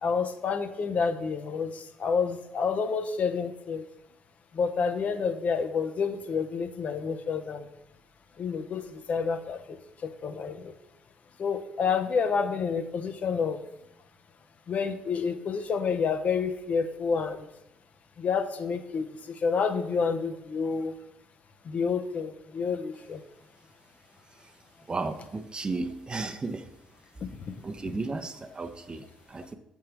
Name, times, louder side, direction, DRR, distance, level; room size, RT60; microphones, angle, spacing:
voice 1, 0.0-3.9 4.5-7.7 8.4-9.8 10.0-10.7 11.4-13.6 14.7-17.5 18.2-20.9 21.6-23.2 27.4-27.5, left 5 dB, 50° left, 8 dB, 0.5 m, -29 dB
voice 2, 24.9-26.7 27.6-29.5, right 3 dB, 30° right, 8 dB, 0.6 m, -34 dB
7.5 x 3.6 x 4.5 m, 0.87 s
hypercardioid pair, 50°, 3 cm